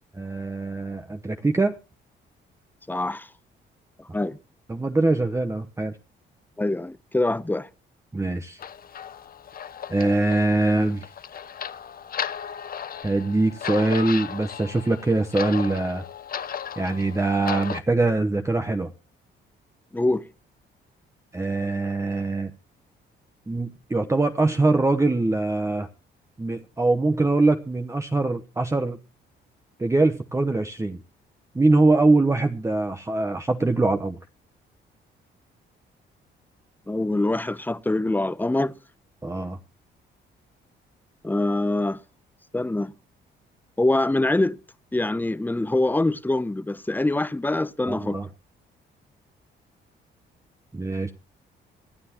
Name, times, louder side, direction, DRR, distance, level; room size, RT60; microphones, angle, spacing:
voice 1, 0.2-1.8 4.7-5.9 8.1-8.6 9.9-11.1 13.0-16.0 16.8-18.9 21.3-22.5 23.5-25.9 26.4-29.0 29.8-31.0 31.5-34.2 39.2-39.6 47.9-48.3 50.7-51.1, right 2 dB, 15° right, 1.0 m, -23 dB
voice 2, 2.9-3.3 4.0-4.4 6.6-7.7 19.9-20.3 36.9-38.7 41.2-42.0 42.5-42.9 43.8-44.6 44.9-48.2, left 2 dB, 10° left, 0.8 m, -24 dB
sound 1, 8.6-17.8, left 8 dB, 50° left, 0.9 m, -35 dB
26.0 x 9.6 x 3.0 m
cardioid pair, 90°, 20 cm